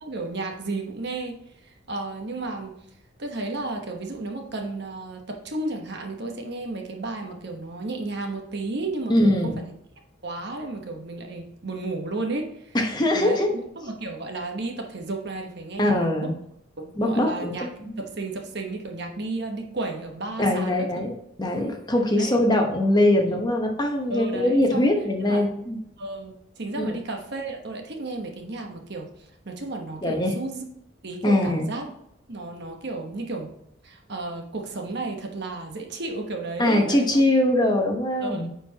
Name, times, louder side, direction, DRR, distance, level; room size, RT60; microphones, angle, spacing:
voice 1, 0.0-1.4 1.6-2.7 3.2-9.7 10.2-12.8 13.1-16.3 16.8-17.7 18.0-20.9 22.2-22.3 23.3-23.4 24.1-24.9 25.3-25.4 26.0-29.1 29.4-30.6 31.0-31.9 32.3-33.5 33.8-37.2 38.2-38.5, right 2 dB, 55° right, 2 dB, 1.1 m, -33 dB
voice 2, 9.1-9.6 12.7-13.5 15.8-16.3 17.0-17.9 20.4-25.8 26.8-27.0 30.0-30.3 31.2-31.7 36.6-38.5, left 1 dB, 20° left, 2 dB, 1.0 m, -22 dB
9.4 x 4.5 x 2.9 m, 0.77 s
head